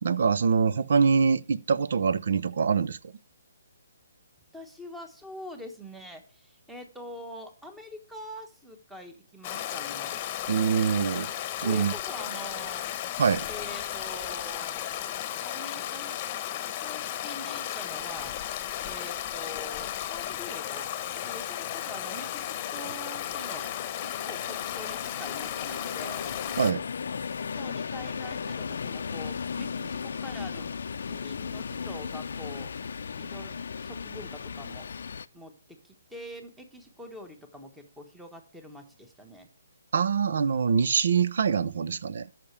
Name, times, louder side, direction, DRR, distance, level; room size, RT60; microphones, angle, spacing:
voice 1, 0.0-3.0 10.5-11.3 11.6-11.9 13.2-13.5 26.6-26.8 39.9-42.3, right 6 dB, 65° right, 0.6 m, -24 dB
voice 2, 4.5-10.2 11.6-12.9 13.5-14.9 15.4-16.1 16.8-18.4 18.8-20.9 21.2-23.7 24.0-26.2 27.5-30.7 31.1-32.7 33.2-34.9 35.3-35.5 35.8-39.5, equal, 5° right, 1.3 m, -44 dB
Stream, 9.4-26.7, left 11 dB, 30° left, 1.0 m, -34 dB
sound 1, 18.2-35.3, left 6 dB, 65° left, 0.5 m, -37 dB
13.5 x 5.9 x 3.3 m
hypercardioid pair, 145°, 0 cm